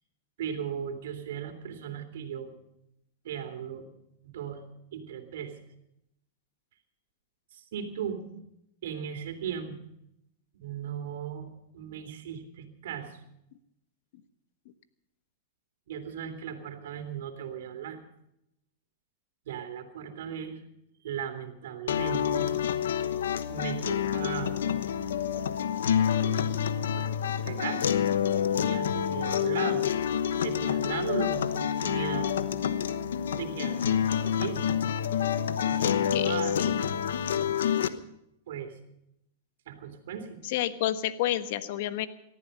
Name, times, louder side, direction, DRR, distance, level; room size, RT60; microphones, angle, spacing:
voice 1, 0.4-2.5 3.2-3.9 4.2-4.6 4.9-5.6 7.5-8.2 8.8-9.8 10.5-11.5 11.7-13.2 15.9-18.0 19.4-20.6 21.0-22.5 23.5-24.7 26.2-26.4 26.9-27.1 27.4-28.1 28.5-29.8 30.4-32.3 33.3-34.6 35.7-36.8 38.5-38.7 39.7-40.4, right 8 dB, 70° right, 6 dB, 3.3 m, -37 dB
sound 1, 21.9-37.9, left 9 dB, 80° left, 1.0 m, -28 dB
voice 2, 35.9-36.7 40.5-42.1, left 13 dB, 60° left, 11 dB, 1.3 m, -30 dB
19.0 x 14.0 x 5.5 m, 0.80 s
hypercardioid pair, 120°, 0 cm